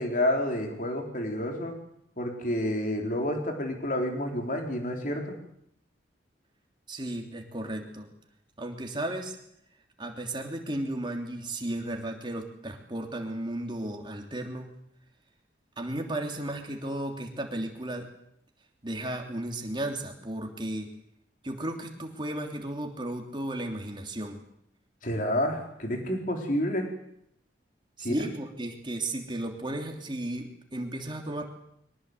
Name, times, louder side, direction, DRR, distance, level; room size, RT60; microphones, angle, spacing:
voice 1, 0.0-1.7 2.2-5.4 25.0-26.9 28.0-28.2, left 1 dB, 45° left, 3 dB, 4.2 m, -29 dB
voice 2, 6.9-8.1 8.6-9.4 10.0-14.7 15.8-18.1 18.8-20.9 21.4-24.4 28.0-31.4, right 1 dB, 25° right, 3 dB, 3.1 m, -34 dB
23.0 x 19.0 x 8.0 m, 0.74 s
head